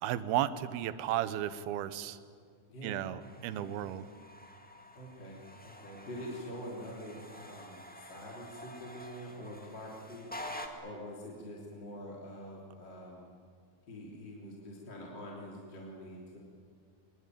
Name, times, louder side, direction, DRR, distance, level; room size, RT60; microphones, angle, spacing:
voice 1, 0.0-2.2 2.8-4.1, right 12 dB, 80° right, 14 dB, 2.8 m, -34 dB
voice 2, 2.7-3.1 3.5-3.8 4.9-10.3 10.8-13.3 13.9-16.4, equal, 30° left, -3 dB, 3.7 m, -45 dB
sound 1, 3.2-10.7, left 1 dB, 10° left, 0.4 m, -49 dB
24.0 x 22.5 x 9.3 m, 2.1 s
omnidirectional pair, 4.4 m